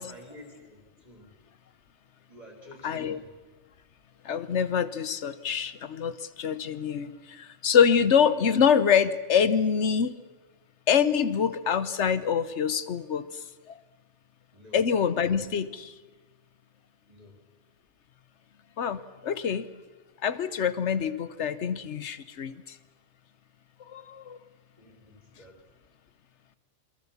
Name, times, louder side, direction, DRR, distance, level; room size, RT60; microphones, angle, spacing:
voice 1, 0.0-1.3 2.3-3.4 14.5-14.8 17.1-17.4 24.8-25.6, left 1 dB, 30° right, 3 dB, 3.7 m, -50 dB
voice 2, 2.8-3.2 4.2-10.1 10.9-13.2 14.7-15.9 18.8-19.7 20.2-22.5 23.9-24.4, left 7 dB, 65° left, 14 dB, 1.3 m, -25 dB
28.0 x 22.0 x 7.2 m, 1.3 s
omnidirectional pair, 1.3 m